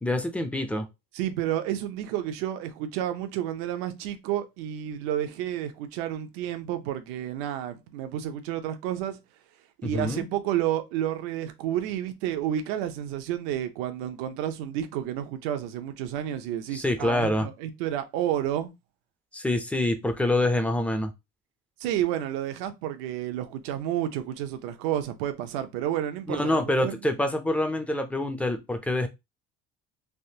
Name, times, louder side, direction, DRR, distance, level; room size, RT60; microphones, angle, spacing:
voice 1, 0.0-0.9 9.8-10.3 16.7-17.5 19.3-21.1 26.3-29.1, left 1 dB, 5° left, 0.4 m, -26 dB
voice 2, 1.1-9.2 9.8-18.7 21.8-27.0, right 11 dB, 85° right, 0.6 m, -30 dB
3.4 x 2.5 x 2.7 m
cardioid pair, 145°, 21 cm